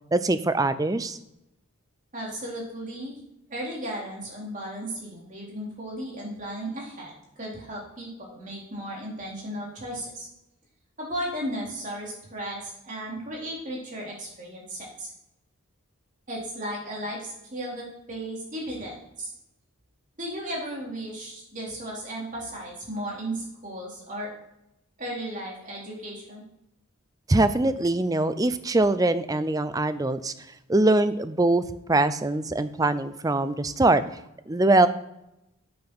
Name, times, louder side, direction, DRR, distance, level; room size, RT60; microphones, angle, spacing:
voice 1, 0.1-1.2 27.3-30.3 30.7-31.6 31.9-34.0 34.5-34.9, right 2 dB, 15° right, 13 dB, 0.5 m, -22 dB
voice 2, 2.1-3.2 3.5-7.1 7.4-10.3 11.0-15.1 16.3-19.3 20.2-24.3 25.0-26.4, right 1 dB, 35° right, -3 dB, 3.4 m, -35 dB
8.6 x 5.9 x 6.1 m, 0.86 s
head